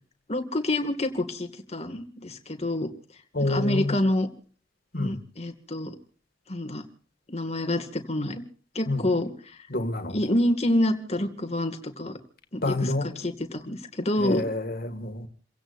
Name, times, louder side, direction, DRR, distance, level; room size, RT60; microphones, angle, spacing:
voice 1, 0.3-2.9 3.4-4.3 5.0-6.0 6.5-6.8 7.3-8.4 8.7-9.3 10.1-12.2 12.5-14.4, left 1 dB, 35° left, 2.2 m, -27 dB
voice 2, 3.3-4.0 4.9-5.2 8.9-9.1 9.7-10.2 12.6-13.1 14.2-15.3, left 2 dB, 55° left, 2.2 m, -28 dB
29.5 x 17.0 x 2.6 m
head